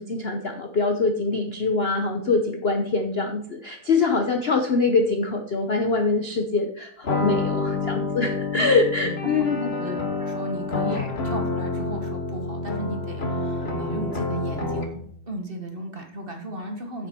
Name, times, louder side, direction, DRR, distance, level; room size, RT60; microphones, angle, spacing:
voice 1, 0.0-9.6, left 3 dB, 50° left, 5 dB, 0.7 m, -24 dB
sound 1, 7.0-15.1, left 3 dB, 35° left, 1.3 m, -28 dB
voice 2, 9.0-17.1, equal, 30° right, 3 dB, 1.4 m, -35 dB
9.0 x 7.8 x 4.5 m, 0.63 s
omnidirectional pair, 2.3 m